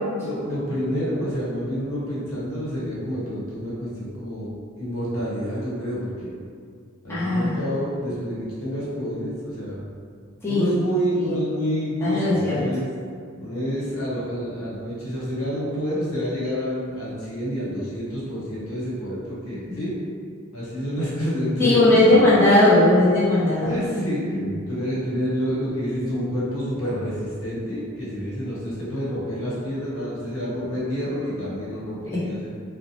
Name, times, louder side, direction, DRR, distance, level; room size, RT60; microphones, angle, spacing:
voice 1, 0.2-6.3 7.0-9.8 10.5-12.9 13.4-19.9 20.5-22.3 23.6-32.5, equal, 80° left, -8 dB, 0.9 m, -28 dB
voice 2, 7.1-7.5 10.4-10.6 11.3-11.4 12.0-12.6 19.7-19.8 21.6-23.8 32.1-32.2, left 1 dB, 10° left, -11 dB, 0.6 m, -18 dB
2.9 x 2.0 x 2.6 m, 2.2 s
head